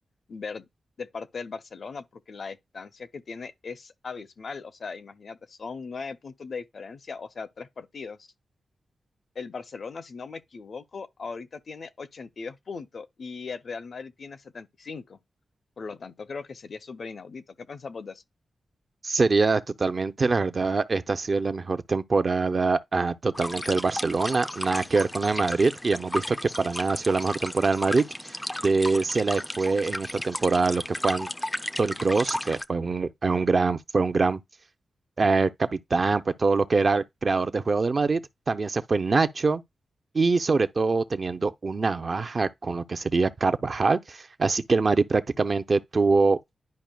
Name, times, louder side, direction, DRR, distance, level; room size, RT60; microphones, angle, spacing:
voice 1, 0.3-0.6 1.0-8.3 9.3-15.2 15.8-18.2, left 4 dB, 55° left, 0.6 m, -39 dB
voice 2, 19.0-28.4 28.6-31.3 31.8-34.4 35.2-38.2 38.5-39.6 40.1-46.4, right 4 dB, 40° right, 0.5 m, -24 dB
sound 1, 23.3-32.6, left 1 dB, 10° left, 0.4 m, -34 dB
10.5 x 4.9 x 2.3 m
wide cardioid pair, 110°, 0 cm